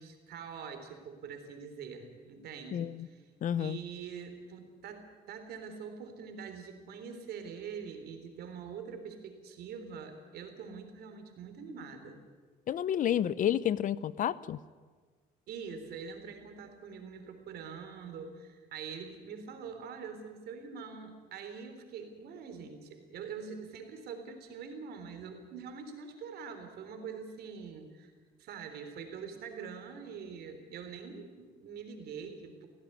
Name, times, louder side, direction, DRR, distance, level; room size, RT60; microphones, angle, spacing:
voice 1, 0.0-3.2 3.6-12.2 15.5-28.1 28.4-32.7, right 6 dB, 70° right, 7 dB, 3.5 m, -44 dB
voice 2, 2.7-3.1 3.4-3.8 12.7-14.6, left 10 dB, 50° left, 18 dB, 0.7 m, -30 dB
17.0 x 16.5 x 9.9 m, 1.5 s
cardioid pair, 110°, 17 cm